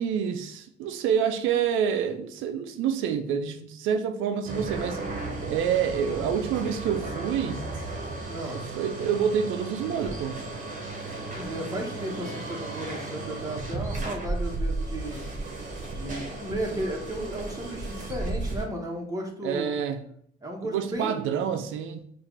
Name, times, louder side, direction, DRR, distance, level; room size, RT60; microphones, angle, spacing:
voice 1, 0.0-5.0 5.5-7.6 8.5-10.4 19.4-20.0 20.6-22.1, right 8 dB, 90° right, 0.4 m, -27 dB
sound 1, 4.4-18.6, right 2 dB, 40° right, 1.2 m, -34 dB
voice 2, 8.3-8.6 11.3-15.2 15.9-19.7 20.4-21.3, right 1 dB, 15° right, 1.2 m, -34 dB
5.7 x 2.5 x 3.2 m
cardioid pair, 90°, 20 cm